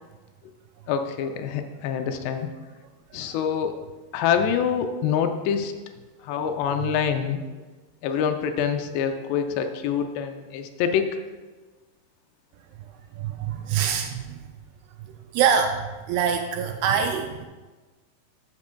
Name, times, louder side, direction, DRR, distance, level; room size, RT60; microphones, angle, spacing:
voice 1, 0.9-2.5 3.1-3.7 4.1-5.7 6.2-7.4 8.0-11.1, left 7 dB, 80° left, 6 dB, 2.6 m, -25 dB
voice 2, 13.2-14.3 15.3-17.5, right 7 dB, 85° right, 6 dB, 2.4 m, -25 dB
12.0 x 8.4 x 2.2 m, 1.3 s
omnidirectional pair, 4.9 m